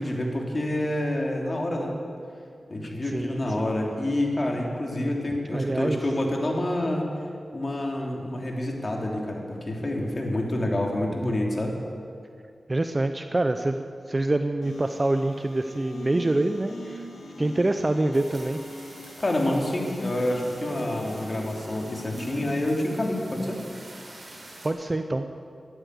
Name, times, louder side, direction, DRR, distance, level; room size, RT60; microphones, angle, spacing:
voice 1, 0.0-1.9 2.7-7.1 7.5-11.8 19.2-23.6, left 1 dB, 45° left, 0 dB, 3.3 m, -27 dB
voice 2, 3.0-3.7 5.5-6.0 12.7-17.1 17.4-18.6 24.6-25.3, right 2 dB, 35° right, 8 dB, 0.8 m, -26 dB
sound 1, 14.6-22.6, left 2 dB, 80° left, 2.2 m, -41 dB
sound 2, 18.1-24.7, right 1 dB, 55° right, 5.2 m, -46 dB
14.0 x 12.0 x 8.4 m, 2.3 s
cardioid pair, 50°, 0 cm